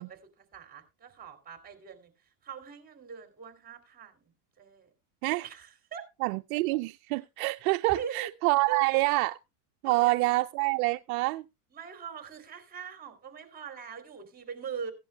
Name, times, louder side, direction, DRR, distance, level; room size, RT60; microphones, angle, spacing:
voice 1, 0.0-2.1 2.4-4.3 4.6-4.9 5.4-6.0 7.9-8.3 8.7-8.8 9.8-10.1 11.7-14.9, right 7 dB, 20° right, 2.8 m, -42 dB
voice 2, 6.2-9.4 9.8-11.5, right 22 dB, 65° right, 0.5 m, -27 dB
16.5 x 10.5 x 2.2 m
supercardioid pair, 120°, 46 cm